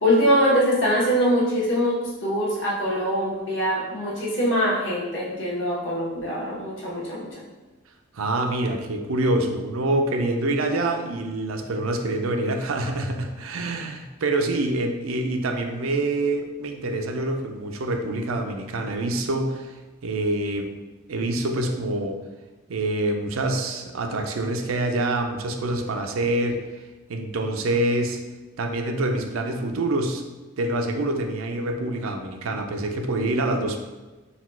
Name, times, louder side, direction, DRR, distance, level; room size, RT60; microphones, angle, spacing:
voice 1, 0.0-7.4, equal, 60° left, -5 dB, 1.2 m, -23 dB
voice 2, 8.1-20.7 21.1-22.2 22.7-26.6 27.1-28.2 28.6-30.2 30.6-33.8, right 2 dB, 85° right, 4 dB, 0.5 m, -26 dB
4.1 x 2.3 x 4.2 m, 1.2 s
head